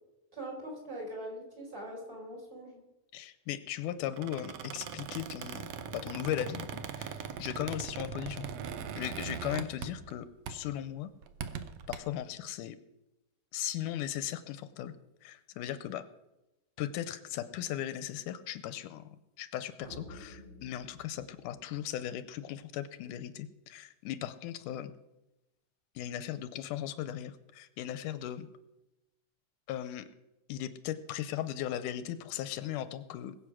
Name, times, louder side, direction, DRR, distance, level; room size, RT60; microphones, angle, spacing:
voice 1, 0.3-2.8, right 1 dB, 25° right, -2 dB, 5.3 m, -42 dB
voice 2, 3.1-6.7 6.9-8.5 9.0-11.1 11.9-12.8 13.5-14.9 15.2-16.1 16.8-19.1 19.4-24.9 26.0-28.5 29.7-30.1 30.5-33.4, left 11 dB, 80° left, 13 dB, 2.2 m, -37 dB
Squeak, 4.1-10.2 10.5-10.7 11.2-12.0, right 7 dB, 65° right, 1.8 m, -40 dB
sound 1, 19.8-22.3, left 1 dB, 45° right, 5.7 m, -51 dB
20.5 x 8.1 x 6.2 m, 0.96 s
omnidirectional pair, 3.7 m